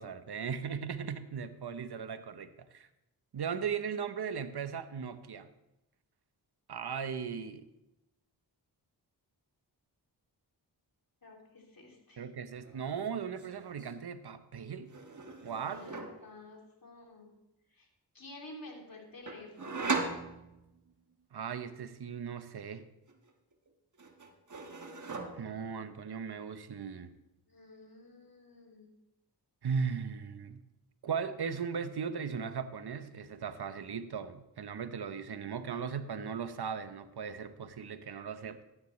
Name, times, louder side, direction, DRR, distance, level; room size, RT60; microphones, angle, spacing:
voice 1, 0.0-2.9 3.3-5.5 6.7-7.7 12.2-14.9 15.4-15.8 21.3-22.9 25.3-27.1 29.6-30.6 31.0-38.6, right 6 dB, 60° right, 11 dB, 0.9 m, -37 dB
voice 2, 11.2-12.3 15.6-17.3 17.7-17.9 18.1-19.9 27.5-28.9, left 2 dB, 50° left, 0 dB, 3.0 m, -51 dB
sound 1, 12.5-12.9 13.1-13.9 14.9-16.3 19.3-20.9 23.1-23.7 24.0-25.7, right 4 dB, 40° right, 1.4 m, -39 dB
14.0 x 9.9 x 3.2 m, 0.93 s
cardioid pair, 50°, 44 cm